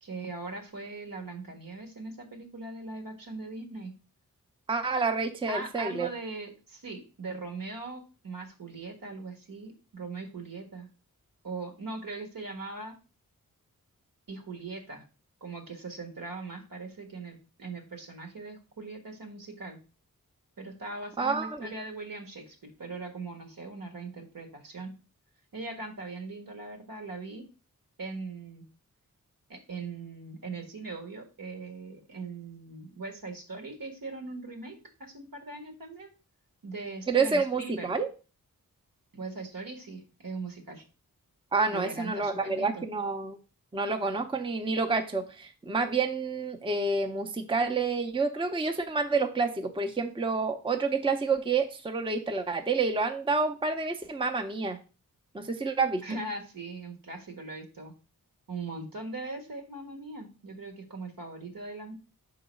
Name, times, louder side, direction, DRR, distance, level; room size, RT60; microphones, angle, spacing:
voice 1, 0.0-3.9 5.5-10.9 11.4-12.9 14.3-15.0 15.4-19.8 20.6-24.9 25.5-27.4 28.0-28.6 29.5-36.1 36.6-37.9 39.1-40.8 41.7-42.8 56.0-57.9 58.5-61.9, right 3 dB, 70° right, 4 dB, 1.6 m, -40 dB
voice 2, 4.7-6.1 21.2-21.7 37.1-38.1 41.5-43.4 43.7-54.8 55.3-56.0, right 4 dB, 15° right, 6 dB, 0.6 m, -28 dB
5.2 x 3.9 x 5.1 m, 0.34 s
wide cardioid pair, 80°, 35 cm